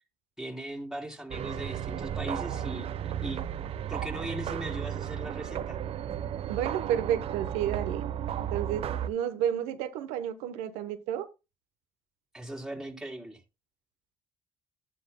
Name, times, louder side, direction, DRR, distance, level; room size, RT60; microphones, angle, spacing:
voice 1, 0.4-3.4 3.9-5.8 12.3-13.4, right 1 dB, 5° right, 3.5 m, -39 dB
sound 1, 1.3-9.1, right 10 dB, 65° right, 0.9 m, -34 dB
voice 2, 6.5-8.0 8.5-11.3, right 10 dB, 90° right, 0.9 m, -31 dB
12.0 x 9.9 x 2.2 m
supercardioid pair, 60°, 11 cm